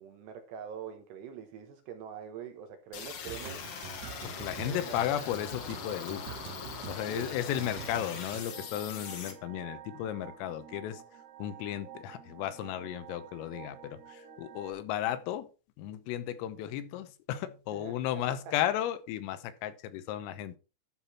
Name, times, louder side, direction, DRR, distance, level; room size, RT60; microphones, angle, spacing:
voice 1, 0.0-3.6 4.6-5.0 7.0-7.4 17.7-18.5, right 8 dB, 70° right, 3.0 m, -44 dB
sound 1, 2.9-9.3, left 7 dB, 65° left, 1.9 m, -42 dB
sound 2, 3.3-8.4, right 10 dB, 85° right, 3.3 m, -46 dB
voice 2, 4.2-6.4 6.8-11.0 11.4-15.5 15.8-20.6, left 11 dB, 85° left, 3.6 m, -34 dB
sound 3, 7.4-14.7, right 9 dB, 50° right, 4.1 m, -50 dB
12.0 x 6.1 x 4.3 m
omnidirectional pair, 5.9 m